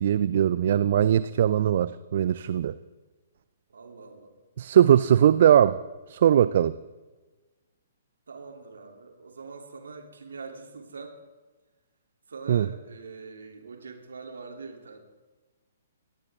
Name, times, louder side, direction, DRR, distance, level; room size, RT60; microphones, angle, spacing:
voice 1, 0.0-2.7 4.6-5.8 6.1-6.7 12.5-12.7, right 10 dB, 55° right, 16 dB, 0.5 m, -20 dB
voice 2, 1.4-1.8 3.7-4.3 8.3-11.1 12.3-15.0, right 4 dB, 70° right, 3 dB, 3.1 m, -43 dB
23.5 x 17.0 x 3.6 m, 1.2 s
figure-of-eight pair, 120°, 0 cm